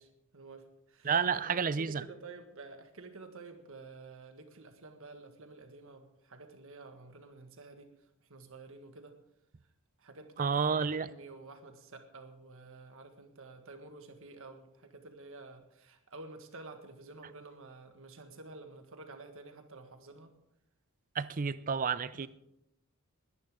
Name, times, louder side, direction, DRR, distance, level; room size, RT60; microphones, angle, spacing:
voice 1, 0.0-7.9 8.2-9.2 10.0-20.3 22.1-22.3, right 3 dB, 65° right, 1.7 m, -50 dB
voice 2, 1.0-2.0 10.4-11.1 21.2-22.3, right 6 dB, 40° right, 0.5 m, -30 dB
20.5 x 11.0 x 3.7 m
head